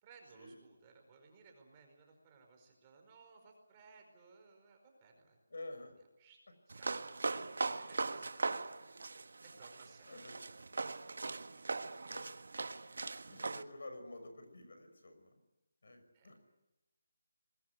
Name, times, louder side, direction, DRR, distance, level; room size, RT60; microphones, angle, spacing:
voice 1, 0.0-5.4 6.2-6.4 6.8-8.3 9.4-10.3 11.2-11.8 16.1-16.4, right 4 dB, 20° right, 2 dB, 4.8 m, -61 dB
voice 2, 5.5-5.9 7.7-7.8 10.1-10.4 11.8-12.2 13.3-15.4 15.8-16.4, left 2 dB, 70° left, 7 dB, 6.3 m, -50 dB
sound 1, 6.7-13.6, right 3 dB, 70° right, 1.3 m, -40 dB
22.5 x 21.0 x 9.5 m, 1.0 s
figure-of-eight pair, 170°, 0 cm